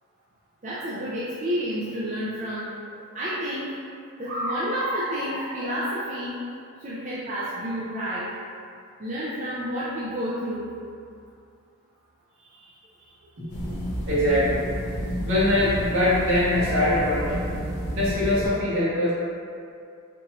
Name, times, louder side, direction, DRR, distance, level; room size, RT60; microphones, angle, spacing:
voice 1, 0.6-2.7 3.1-3.7 4.2-6.3 6.8-8.3 9.0-10.7, equal, 35° right, -9 dB, 0.4 m, -29 dB
sound 1, 13.5-18.5, equal, 90° left, 0.7 m, -30 dB
voice 2, 14.1-14.6 15.2-17.4 17.9-19.1, left 1 dB, 65° right, -10 dB, 1.4 m, -22 dB
4.4 x 2.6 x 3.0 m, 2.4 s
head